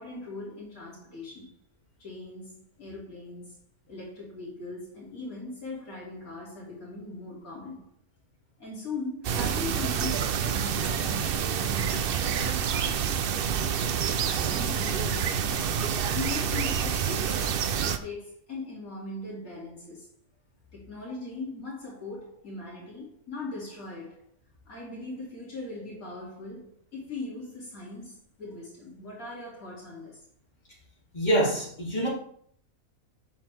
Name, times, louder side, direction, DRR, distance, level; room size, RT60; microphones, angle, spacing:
voice 1, 0.0-1.5 2.0-3.6 3.9-7.9 8.6-13.2 14.1-15.7 16.1-20.1 20.7-24.2 24.6-30.2, left 2 dB, 80° left, 2.9 m, -40 dB
sound 1, 9.2-18.0, right 8 dB, 60° right, 0.6 m, -28 dB
voice 2, 31.1-32.1, right 1 dB, 30° left, 3.1 m, -25 dB
7.9 x 6.5 x 3.4 m
omnidirectional pair, 1.5 m